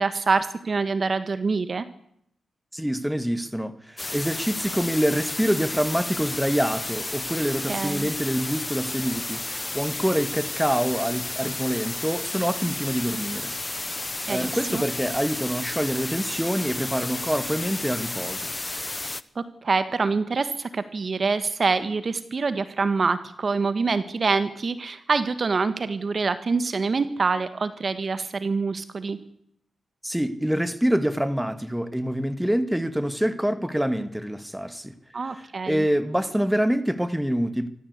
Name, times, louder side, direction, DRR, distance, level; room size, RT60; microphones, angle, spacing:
voice 1, 0.0-1.9 7.7-8.1 14.3-14.8 19.3-29.2 35.1-35.8, right 4 dB, 50° right, 1.6 m, -25 dB
voice 2, 2.7-13.5 14.3-18.5 30.0-34.9 35.2-37.7, equal, 5° right, 2.0 m, -26 dB
sound 1, 4.0-19.2, left 2 dB, 25° left, 1.1 m, -32 dB
24.0 x 14.5 x 8.3 m
cardioid pair, 60°, 0 cm